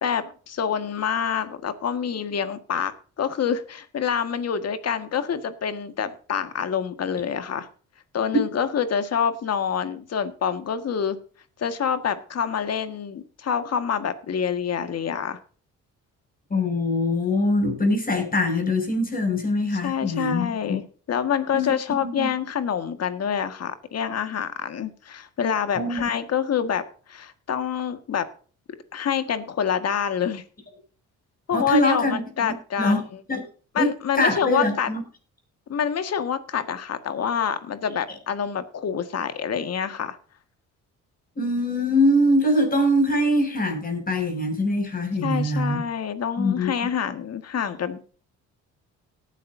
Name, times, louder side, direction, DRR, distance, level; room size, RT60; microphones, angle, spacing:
voice 1, 0.0-2.9 3.2-7.7 8.1-11.2 11.6-15.4 19.8-28.3 28.9-30.4 31.5-33.0 33.7-34.9 35.7-40.2 45.2-48.1, left 7 dB, 55° left, 10 dB, 1.8 m, -27 dB
voice 2, 16.5-20.8 21.5-22.3 25.8-26.0 31.5-33.0 33.3-33.4 33.7-35.0 41.3-45.8 46.4-46.7, left 1 dB, 30° left, 4 dB, 6.5 m, -23 dB
18.5 x 10.0 x 2.7 m, 0.40 s
cardioid pair, 90°, 30 cm